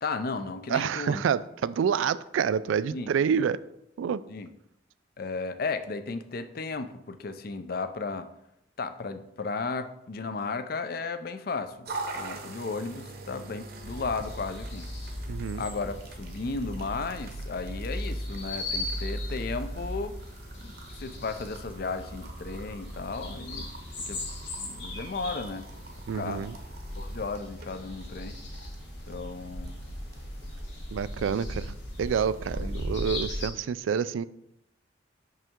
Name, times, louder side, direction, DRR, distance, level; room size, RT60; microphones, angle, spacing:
voice 1, 0.0-1.2 2.9-3.1 4.3-4.5 5.2-8.3 8.8-14.9 15.6-20.1 20.6-23.7 24.1-24.2 24.5-25.7 26.1-26.5 27.0-28.4 29.1-29.8 31.3-31.4 32.5-32.8, left 4 dB, 50° left, 10 dB, 0.5 m, -34 dB
voice 2, 0.7-3.6 4.0-4.2 15.3-15.6 26.1-26.5 30.9-31.7 32.0-34.2, right 7 dB, 90° right, 16 dB, 0.3 m, -28 dB
sound 1, 11.8-30.6, right 3 dB, 50° right, 0.8 m, -46 dB
sound 2, 13.8-33.5, left 1 dB, 70° left, 2.0 m, -37 dB
6.1 x 5.5 x 3.6 m, 0.79 s
head